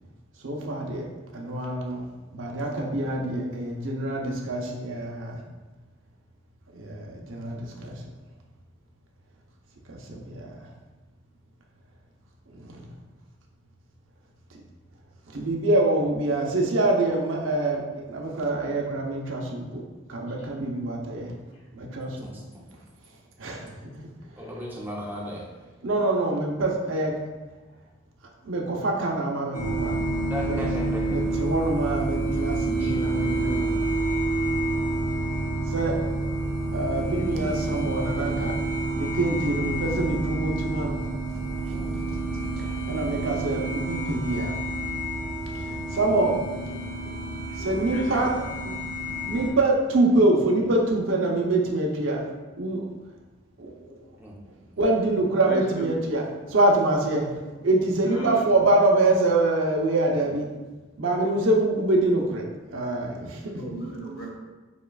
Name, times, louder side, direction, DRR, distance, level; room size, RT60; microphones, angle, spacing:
voice 1, 0.4-2.1 2.3-5.4 6.7-8.0 9.9-10.7 12.5-12.9 15.3-19.8 20.1-21.3 21.7-22.1 23.4-23.7 25.8-27.1 28.4-30.0 30.4-30.6 31.1-33.8 35.7-36.0 36.7-38.6 38.9-41.0 41.6-41.7 42.6-44.6 45.5-46.4 47.6-48.3 49.2-52.2 52.6-52.8 53.6-54.0 54.8-56.2 56.5-57.4 57.6-60.5 61.0-63.4, right 2 dB, 85° right, -1 dB, 0.7 m, -25 dB
voice 2, 20.2-20.5 20.8-21.2 21.5-22.0 24.2-25.0 35.2-35.4 36.9-37.4 39.6-39.7 46.6-48.3 55.2-56.1 57.4-57.5 58.0-58.6 61.1-61.5 63.5-64.4, right 1 dB, 75° left, -3 dB, 1.0 m, -40 dB
voice 3, 22.0-22.5 24.4-25.5 30.3-31.4 32.8-32.9 41.7-42.1 54.2-54.4, equal, 10° right, -4 dB, 0.7 m, -36 dB
sound 1, 29.5-49.5, right 2 dB, 45° left, 0.7 m, -28 dB
7.0 x 2.4 x 2.3 m, 1.2 s
head